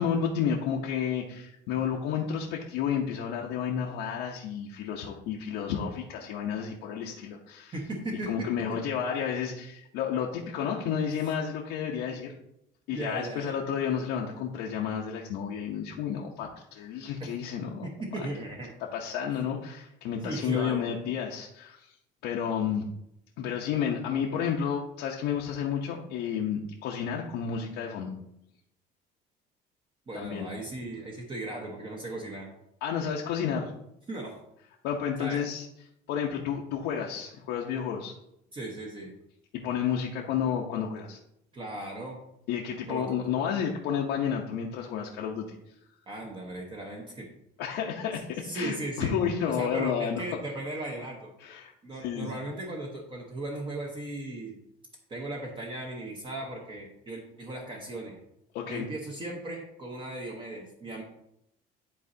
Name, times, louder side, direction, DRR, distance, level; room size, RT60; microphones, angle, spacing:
voice 1, 0.0-7.7 8.3-12.3 12.9-17.9 18.8-21.9 22.2-22.8 23.4-28.1 30.1-30.5 32.8-33.7 34.8-35.7 36.1-38.1 39.6-41.2 42.5-45.5 47.6-50.2 51.4-51.7 52.0-52.3 58.5-58.9, left 8 dB, 90° left, -2 dB, 0.8 m, -31 dB
voice 2, 7.7-8.5 11.2-11.3 12.9-13.6 17.2-17.3 17.8-18.7 20.2-21.0 30.1-32.5 34.1-34.3 35.2-35.4 38.5-39.1 41.5-42.2 42.9-43.2 46.1-47.3 48.4-49.1 49.5-51.3 51.8-54.6 55.1-58.2 58.7-61.0, right 2 dB, 30° right, 0 dB, 1.1 m, -37 dB
11.0 x 4.2 x 2.7 m, 0.80 s
cardioid pair, 140°, 17 cm